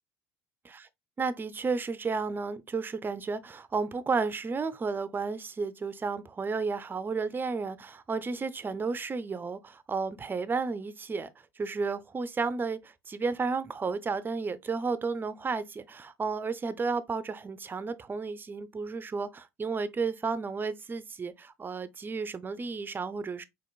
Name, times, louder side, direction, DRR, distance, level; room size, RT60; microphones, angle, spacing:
voice 1, 1.2-11.3 11.6-23.4, right 4 dB, 25° right, 0.4 m, -32 dB
4.2 x 2.9 x 2.2 m
supercardioid pair, 80°, 8 cm